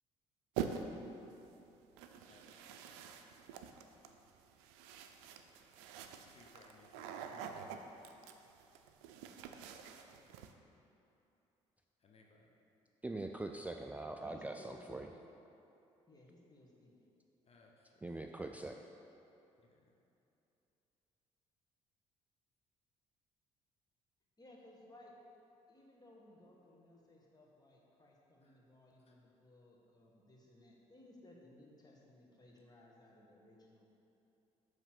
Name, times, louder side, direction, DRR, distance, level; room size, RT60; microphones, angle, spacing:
sound 1, 0.6-1.1 2.0-10.5, right 7 dB, 90° right, 0.4 m, -46 dB
voice 1, 2.3-3.1 6.1-7.6 12.0-12.6 17.4-18.2 19.7-19.8 28.4-28.6 29.0-29.2, left 3 dB, 45° left, 0 dB, 0.8 m, -65 dB
voice 2, 13.0-15.1 18.0-18.8, right 2 dB, 10° right, 4 dB, 0.3 m, -43 dB
voice 3, 14.2-15.2 16.1-16.9 24.4-25.1 25.7-33.9, left 1 dB, 30° left, -2 dB, 1.5 m, -60 dB
7.3 x 3.2 x 6.0 m, 2.9 s
supercardioid pair, 60°, 14 cm